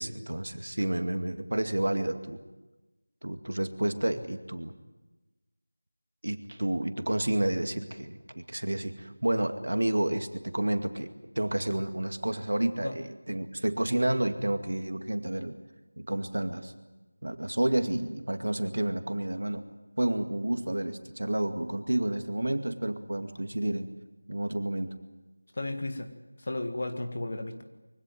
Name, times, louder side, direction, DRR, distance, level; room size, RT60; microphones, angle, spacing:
voice 1, 0.0-2.4 3.2-4.7 6.2-11.1 11.4-15.6 16.0-16.7 17.2-19.6 20.0-23.9 24.3-24.9, right 1 dB, 75° right, 7 dB, 2.2 m, -30 dB
voice 2, 25.5-26.1 26.4-27.6, left 2 dB, 35° left, 7 dB, 1.7 m, -34 dB
24.0 x 16.5 x 9.3 m, 1.1 s
figure-of-eight pair, 180°, 0 cm